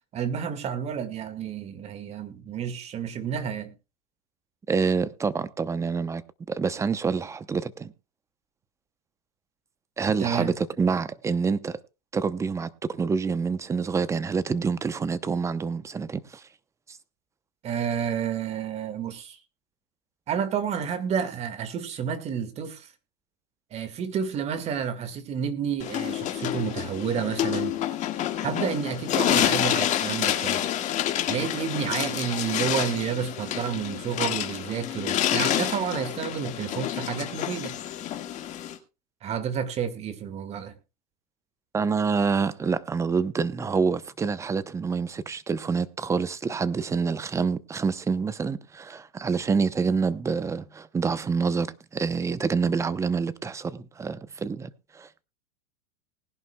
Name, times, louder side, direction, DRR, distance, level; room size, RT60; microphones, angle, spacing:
voice 1, 0.1-3.7 10.2-10.6 17.6-19.4 20.3-22.9 23.7-27.8 28.4-30.6 31.3-37.8 39.2-40.7, right 7 dB, 30° right, 1.9 m, -30 dB
voice 2, 4.7-6.2 6.5-7.9 10.0-11.8 12.1-16.4 16.9-17.0 41.7-55.2, right 5 dB, 15° right, 0.8 m, -27 dB
sound 1, 25.8-38.8, left 11 dB, 35° left, 1.8 m, -28 dB
19.5 x 11.0 x 2.3 m
hypercardioid pair, 115°, 20 cm